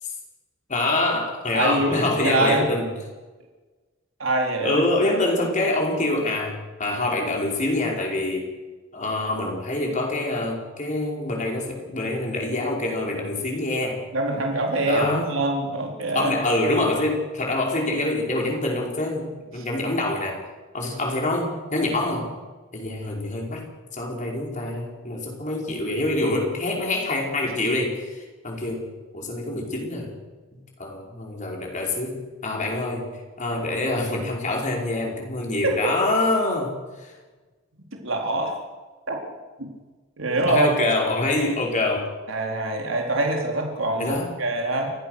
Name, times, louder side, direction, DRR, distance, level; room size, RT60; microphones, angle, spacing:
voice 1, 0.7-2.9 4.6-8.5 8.9-14.1 14.9-15.3 16.1-20.4 20.7-22.3 22.7-30.1 30.5-37.1 40.5-42.1 44.0-44.3, left 2 dB, 40° left, 0 dB, 5.1 m, -26 dB
voice 2, 1.5-2.7 4.2-4.8 14.1-16.3 35.6-35.9 37.9-38.6 39.1-39.2 40.2-40.7 42.3-44.9, right 2 dB, 80° right, 1 dB, 4.0 m, -24 dB
29.0 x 15.5 x 6.6 m, 1.3 s
head